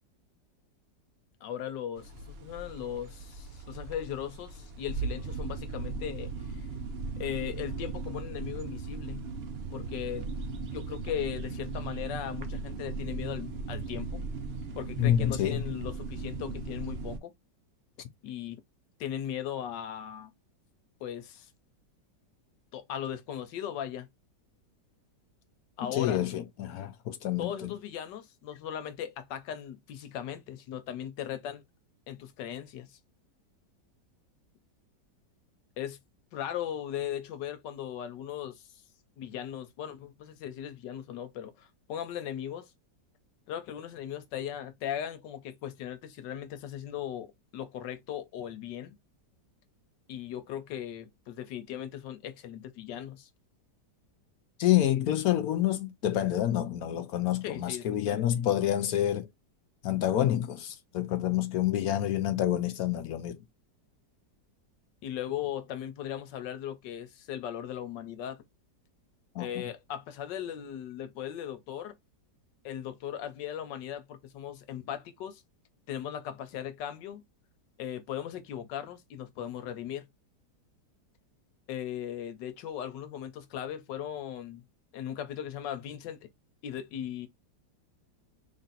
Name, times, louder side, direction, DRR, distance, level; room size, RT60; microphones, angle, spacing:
voice 1, 1.4-6.3 7.2-9.3 9.7-10.3 10.7-14.2 14.7-17.3 18.2-18.6 19.0-20.3 21.0-21.5 22.7-24.1 25.8-26.3 27.4-31.6 32.1-33.0 35.8-36.0 36.3-38.6 39.2-42.7 43.5-49.0 50.1-53.3 57.4-58.3 65.0-68.4 69.4-71.9 72.6-75.4 75.9-77.2 77.8-80.1 81.7-84.6 84.9-86.2 86.6-87.3, left 10 dB, 90° left, 1.4 m, -38 dB
sound 1, 2.0-17.2, right 4 dB, 75° right, 0.5 m, -37 dB
voice 2, 15.0-15.6 25.8-27.7 54.6-59.3 59.8-63.4 69.4-69.5, left 12 dB, 70° left, 0.9 m, -28 dB
3.6 x 2.6 x 4.0 m
omnidirectional pair, 1.9 m